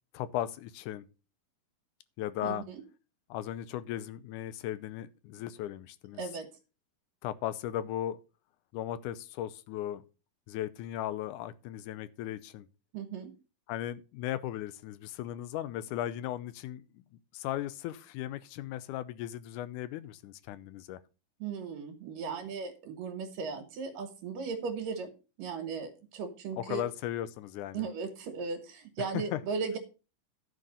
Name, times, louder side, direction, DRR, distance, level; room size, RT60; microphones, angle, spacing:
voice 1, 0.1-1.1 2.2-2.6 3.3-6.3 7.2-8.2 8.7-10.0 10.5-12.7 13.7-17.0 17.3-21.0 26.6-27.9 29.1-29.4, left 12 dB, 75° left, 2.0 m, -37 dB
voice 2, 2.4-2.8 6.2-6.5 12.9-13.3 21.4-25.1 25.4-26.8 27.7-29.8, right 5 dB, 75° right, 3.1 m, -37 dB
11.0 x 6.4 x 5.3 m
omnidirectional pair, 3.9 m